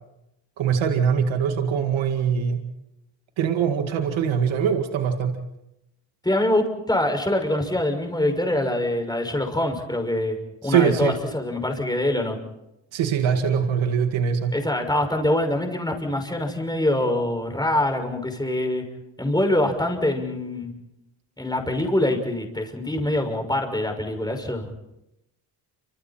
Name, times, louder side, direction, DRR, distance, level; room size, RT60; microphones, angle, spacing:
voice 1, 0.6-2.7 3.4-5.4 10.6-11.1 12.9-14.5, right 7 dB, 85° right, 5 dB, 2.1 m, -22 dB
voice 2, 6.2-10.4 10.6-12.4 14.5-18.8 19.2-20.7 21.4-24.9, left 1 dB, 10° left, 4 dB, 6.0 m, -24 dB
29.0 x 26.5 x 4.4 m, 0.88 s
cardioid pair, 80°, 45 cm